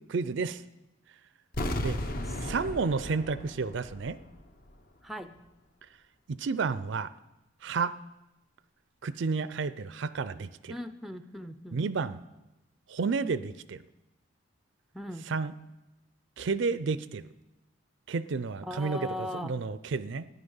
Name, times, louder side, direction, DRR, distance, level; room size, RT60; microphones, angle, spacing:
voice 1, 0.1-0.6 1.8-2.0 2.4-4.2 6.3-7.1 7.6-8.0 9.0-10.8 11.7-12.2 12.9-13.8 15.3-15.5 16.4-17.3 18.1-20.3, right 4 dB, 60° right, 15 dB, 0.4 m, -31 dB
sound 1, 1.5-4.4 4.7-4.8, left 1 dB, 45° left, 0.8 m, -35 dB
voice 2, 5.0-5.4 10.7-11.8 14.9-15.3 18.6-19.5, left 1 dB, ahead, 10 dB, 0.4 m, -38 dB
13.0 x 10.0 x 5.5 m, 0.99 s
head